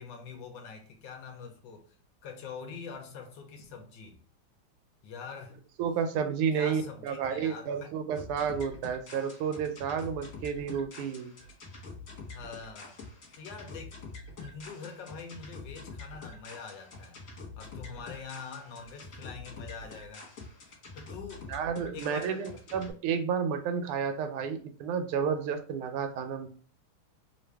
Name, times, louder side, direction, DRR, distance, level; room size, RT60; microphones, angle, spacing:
voice 1, 0.0-2.0 2.2-4.2 5.0-5.6 6.5-7.9 12.3-13.0 13.4-14.0 14.4-17.2 17.6-20.3 20.9-21.5 21.9-22.5, left 5 dB, 70° left, 1.2 m, -44 dB
voice 2, 5.8-11.3 21.5-26.5, right 7 dB, 85° right, 1.5 m, -31 dB
sound 1, 8.1-22.9, left 3 dB, 45° left, 1.3 m, -46 dB
3.3 x 2.5 x 3.2 m
omnidirectional pair, 2.4 m